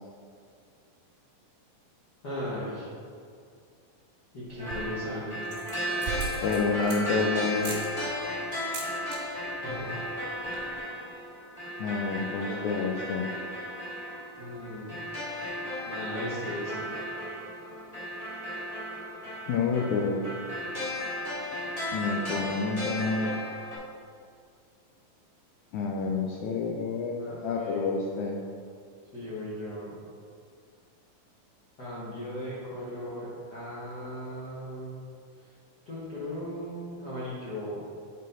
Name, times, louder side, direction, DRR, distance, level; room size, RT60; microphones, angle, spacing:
voice 1, 2.2-2.9 4.3-5.5 9.6-10.1 12.4-12.7 14.4-15.1 15.8-16.9 27.2-27.9 29.1-29.9 31.8-35.0 35.8-37.8, left 1 dB, 60° left, -9 dB, 1.0 m, -37 dB
sound 1, 4.5-5.0 5.4-7.2 7.6-7.9 8.6-9.2 9.5-9.8 10.1-10.2 10.4-10.8, right 6 dB, 85° right, 3.0 m, -38 dB
sound 2, 4.6-23.8, equal, 35° left, 0.5 m, -35 dB
voice 2, 6.4-7.7 11.8-13.3 19.5-20.2 21.9-23.3 25.7-28.4, left 4 dB, 90° left, 0 dB, 1.6 m, -28 dB
8.0 x 4.6 x 3.9 m, 2.2 s
omnidirectional pair, 4.0 m